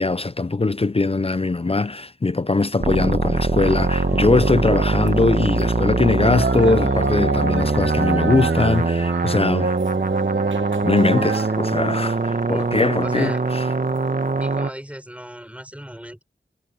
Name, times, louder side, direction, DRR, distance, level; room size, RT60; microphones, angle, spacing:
voice 1, 0.0-9.8 10.8-13.6, left 3 dB, 30° left, 0.5 m, -21 dB
sound 1, 2.8-14.7, right 3 dB, 45° right, 1.3 m, -22 dB
sound 2, 3.7-14.6, right 4 dB, 80° right, 1.1 m, -30 dB
voice 2, 13.0-13.4 14.4-16.2, equal, 5° right, 6.1 m, -37 dB
wide cardioid pair, 65°, 20 cm